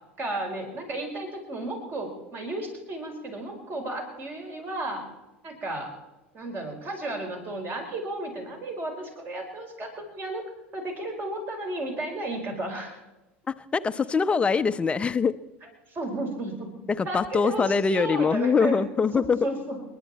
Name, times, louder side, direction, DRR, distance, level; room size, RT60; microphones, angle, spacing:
voice 1, 0.2-5.0 5.4-5.9 6.3-10.4 10.7-13.0 15.9-16.7 17.0-18.9 19.1-19.8, right 2 dB, 35° right, 3 dB, 4.8 m, -33 dB
voice 2, 13.7-15.4 16.9-19.4, left 5 dB, 20° left, 12 dB, 0.7 m, -23 dB
29.5 x 11.0 x 4.3 m, 1.0 s
figure-of-eight pair, 75°, 6 cm